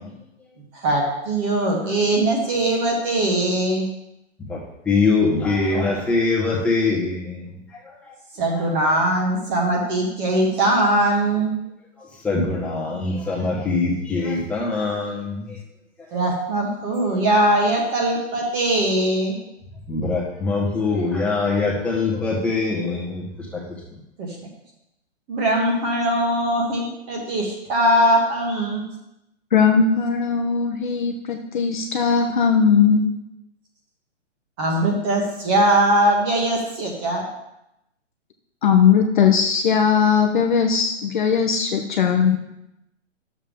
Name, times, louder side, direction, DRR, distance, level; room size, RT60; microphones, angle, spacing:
voice 1, 0.7-3.9 8.4-11.5 16.1-19.4 24.2-24.3 25.3-28.8 34.6-37.2, right 1 dB, 20° right, 0 dB, 1.5 m, -21 dB
voice 2, 4.9-7.2 12.2-15.3 19.9-23.2, left 3 dB, 5° left, -6 dB, 1.4 m, -22 dB
voice 3, 29.5-33.1 38.6-42.4, left 6 dB, 40° left, 3 dB, 0.8 m, -18 dB
10.5 x 7.2 x 3.6 m, 0.85 s
hypercardioid pair, 165°, 37 cm